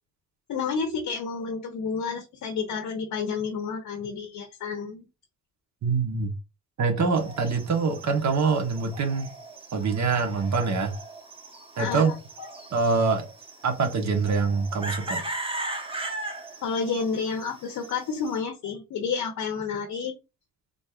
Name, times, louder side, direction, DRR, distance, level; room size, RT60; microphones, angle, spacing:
voice 1, 0.5-5.1 11.8-12.1 16.6-20.1, left 5 dB, 80° left, 1.0 m, -30 dB
voice 2, 5.8-6.3 6.8-9.3 9.7-10.9 11.8-12.1 12.7-13.3 13.6-15.2, right 4 dB, 60° right, 1.3 m, -24 dB
sound 1, 7.1-18.4, right 2 dB, 15° right, 1.0 m, -39 dB
3.9 x 3.6 x 2.4 m
cardioid pair, 75°, 31 cm